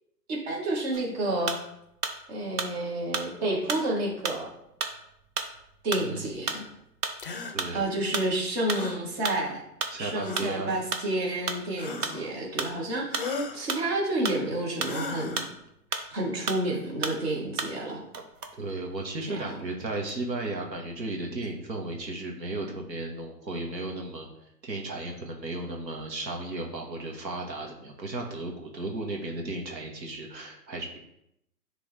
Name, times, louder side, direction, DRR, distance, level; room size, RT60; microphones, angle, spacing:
voice 1, 0.3-1.6 2.3-4.5 5.8-6.6 7.7-9.6 10.0-15.4 15.9-18.0 19.3-19.5, right 1 dB, 40° right, -2 dB, 1.9 m, -30 dB
sound 1, 0.9-2.2 2.6-16.2 16.5-17.9 18.1-19.4 19.8-20.4, right 4 dB, 65° right, 1.1 m, -34 dB
voice 2, 6.0-6.3 7.5-8.1 9.9-10.8 18.5-24.3 24.6-31.0, right 2 dB, 80° right, 1 dB, 1.7 m, -35 dB
sound 2, 7.2-7.6 8.7-9.0 10.2-10.7 11.8-12.3 13.1-13.6 14.8-15.5, left 3 dB, 35° left, 0.5 m, -36 dB
9.8 x 3.8 x 3.4 m, 0.80 s
hypercardioid pair, 145°, 50 cm